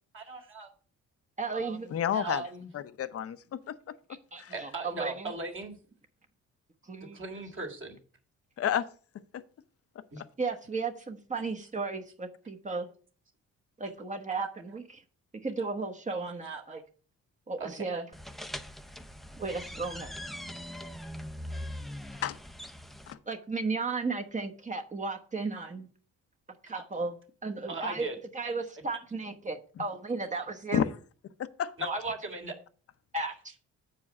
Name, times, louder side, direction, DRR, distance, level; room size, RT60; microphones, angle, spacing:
voice 1, 0.1-0.7 2.1-2.7 4.5-5.8 7.1-8.0 10.1-10.5 11.3-11.4 12.7-12.9 13.8-13.9 14.3-14.5 15.6-15.7 16.1-16.8 17.6-18.0 19.5-19.6 19.8-19.9 23.9-24.0 25.4-25.7 26.7-27.1 27.7-28.2 28.4-28.6 29.8-29.9 30.3-30.5 31.8-32.5 33.2-33.3, right 3 dB, 40° right, 2.0 m, -39 dB
voice 2, 1.4-2.0 4.3-5.3 6.8-7.2 10.1-12.9 13.8-15.0 15.4-16.8 17.5-18.1 19.4-20.1 23.3-25.9 26.6-27.2 27.4-30.8 31.8-32.1 33.1-33.3, right 3 dB, 25° right, 1.0 m, -35 dB
voice 3, 1.9-2.4 2.7-3.7 4.4-4.5 8.6-8.9 10.2-10.3 22.2-22.4 23.1-23.2 30.7-30.8 31.6-31.7, left 9 dB, 50° left, 0.7 m, -30 dB
sound 1, 18.1-23.1, left 1 dB, ahead, 0.5 m, -41 dB
7.0 x 4.8 x 6.0 m
cardioid pair, 90°, 30 cm